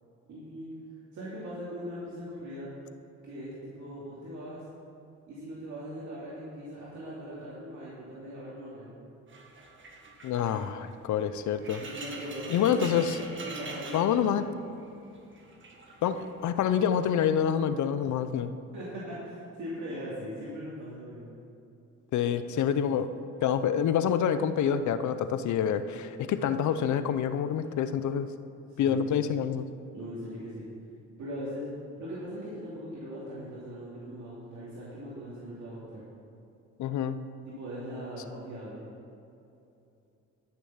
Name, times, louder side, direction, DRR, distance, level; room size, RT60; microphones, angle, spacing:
voice 1, 0.3-0.8 1.1-2.7 3.2-4.6 5.3-8.9 11.8-13.0 13.4-14.5 18.7-21.4 28.7-29.2 29.9-30.6 31.2-31.6 32.0-36.1 37.4-38.9, equal, 70° right, -8 dB, 2.7 m, -40 dB
sound 1, 9.3-14.9 15.1-16.3 16.9-17.3, right 2 dB, 40° right, 1.8 m, -44 dB
voice 2, 10.2-11.8 12.5-13.2 13.9-14.5 16.0-18.5 22.1-23.1 23.4-28.3 28.8-29.6 36.8-37.2, left 8 dB, 70° left, 11 dB, 0.7 m, -27 dB
12.5 x 6.9 x 5.7 m, 2.7 s
cardioid pair, 90°, 30 cm